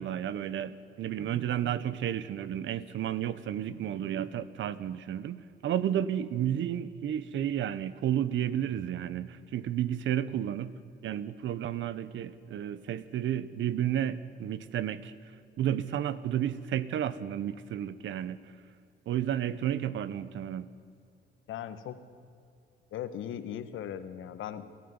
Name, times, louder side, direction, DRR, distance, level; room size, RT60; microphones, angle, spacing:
voice 1, 0.0-10.7 11.0-15.1 15.6-18.4 19.1-20.7, right 10 dB, 75° right, 16 dB, 1.2 m, -32 dB
voice 2, 21.5-22.0 22.9-24.7, left 10 dB, 80° left, 10 dB, 1.8 m, -38 dB
28.0 x 14.0 x 9.8 m, 2.5 s
cardioid pair, 90°, 20 cm